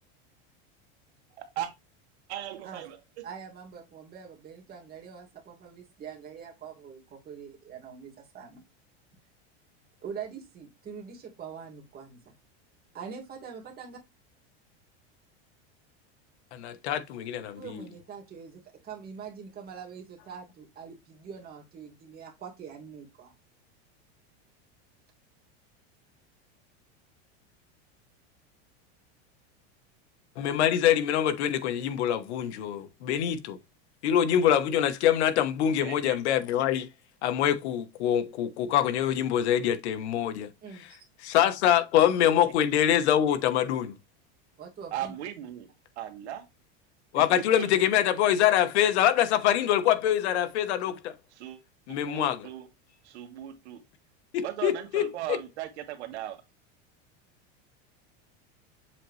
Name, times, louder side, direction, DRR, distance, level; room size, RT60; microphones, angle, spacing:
voice 1, 1.4-1.7 2.3-3.3 35.8-36.2 42.2-42.3 44.9-45.7 46.0-46.5 47.1-47.2 47.6-47.7 51.3-51.6 51.9-52.7 53.0-53.8 54.4-56.4, right 12 dB, 80° right, 1.8 m, -37 dB
voice 2, 3.2-8.6 10.0-12.2 12.9-14.0 17.6-23.3 40.6-40.8 44.6-45.1, right 6 dB, 30° right, 2.4 m, -44 dB
voice 3, 16.5-17.8 30.4-33.6 34.0-36.9 37.2-40.5 41.2-43.9 47.1-51.1 51.9-52.5 54.3-55.1, left 10 dB, 80° left, 1.2 m, -25 dB
7.6 x 4.0 x 3.2 m
supercardioid pair, 145°, 33 cm